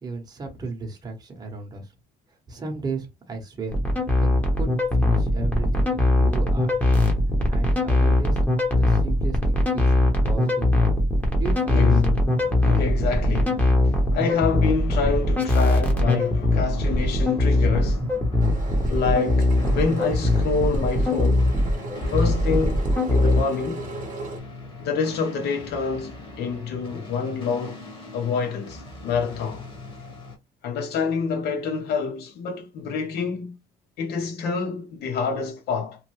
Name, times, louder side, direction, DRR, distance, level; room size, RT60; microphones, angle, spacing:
voice 1, 0.0-1.9 2.3-4.3 4.6-6.9 7.5-8.4 8.7-12.0, right 4 dB, 25° right, 0.9 m, -35 dB
sound 1, 3.7-23.4, left 1 dB, 10° left, 0.9 m, -21 dB
sound 2, 11.6-30.4, left 2 dB, 30° left, 1.2 m, -40 dB
voice 2, 11.7-12.2 12.6-18.0 18.9-21.5 22.1-23.8 24.8-27.8 28.1-29.6 30.6-33.6 34.0-36.0, left 5 dB, 75° left, 1.0 m, -27 dB
Engine, 18.4-24.4, right 3 dB, 50° right, 0.8 m, -38 dB
3.0 x 2.1 x 3.1 m
cardioid pair, 110°, 17 cm